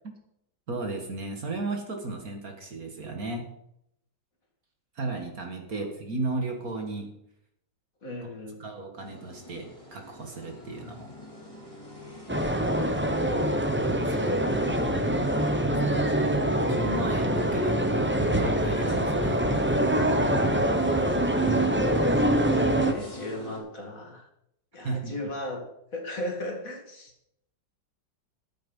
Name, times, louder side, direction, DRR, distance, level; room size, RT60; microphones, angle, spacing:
voice 1, 0.7-3.5 5.0-7.1 8.2-8.3 8.6-11.1 14.1-14.2 15.2-16.3 16.7-19.5 24.8-25.1, right 2 dB, 50° right, 4 dB, 2.1 m, -35 dB
voice 2, 8.0-8.6 15.8-16.1 22.2-24.3 24.7-25.6 25.9-27.1, left 1 dB, 45° left, 2 dB, 2.4 m, -37 dB
sound 1, 9.0-23.6, equal, 15° left, 3.5 m, -44 dB
sound 2, 12.3-22.9, right 1 dB, 15° right, 0.5 m, -24 dB
12.0 x 9.1 x 5.5 m, 0.78 s
omnidirectional pair, 2.1 m